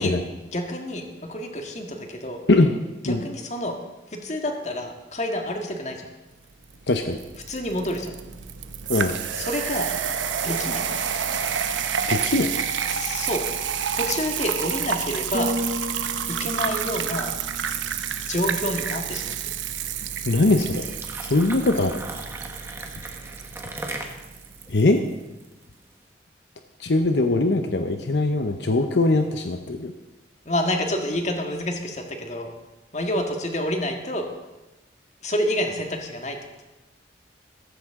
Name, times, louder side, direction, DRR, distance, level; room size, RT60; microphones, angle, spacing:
voice 1, 0.0-2.4 3.0-3.8 4.1-6.1 7.5-8.1 9.3-9.9 10.4-10.8 12.9-13.5 13.9-15.5 16.3-17.3 18.3-19.5 30.5-32.5 32.9-34.3 35.2-36.4, left 1 dB, 35° left, 3 dB, 1.7 m, -28 dB
sound 1, 6.7-24.7, right 7 dB, 90° right, 0.9 m, -29 dB
voice 2, 6.9-7.2 8.9-9.1 12.1-12.5 20.3-20.9 21.2-22.0 24.7-25.0 26.8-29.9, left 2 dB, 70° left, 6 dB, 0.8 m, -21 dB
sound 2, 15.3-19.3 19.7-20.0, equal, 30° right, 0.5 m, -34 dB
sound 3, 20.6-25.9, right 2 dB, 15° right, 1.3 m, -38 dB
16.0 x 14.5 x 3.7 m, 1.1 s
head